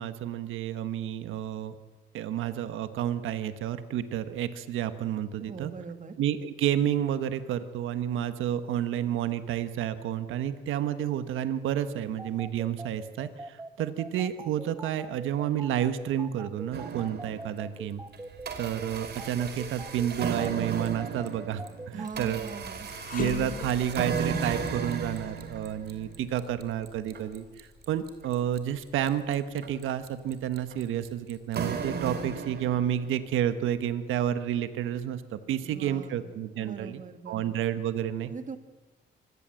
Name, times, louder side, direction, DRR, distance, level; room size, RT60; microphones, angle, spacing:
voice 1, 0.0-1.7 2.1-5.7 6.2-18.0 18.6-22.5 23.1-38.3, right 10 dB, 85° right, 11 dB, 1.3 m, -30 dB
voice 2, 5.4-6.2 21.9-22.9 35.6-37.5 38.3-38.6, right 5 dB, 40° right, 9 dB, 2.2 m, -41 dB
sound 1, 12.2-22.1, right 2 dB, 10° right, 1.3 m, -42 dB
sound 2, 16.7-17.7 18.1-33.2, right 5 dB, 55° right, 3.1 m, -35 dB
sound 3, 22.9-32.1 32.5-32.7 33.6-34.5, left 6 dB, 45° left, 1.3 m, -43 dB
24.5 x 18.0 x 7.7 m, 1.2 s
cardioid pair, 90°, 20 cm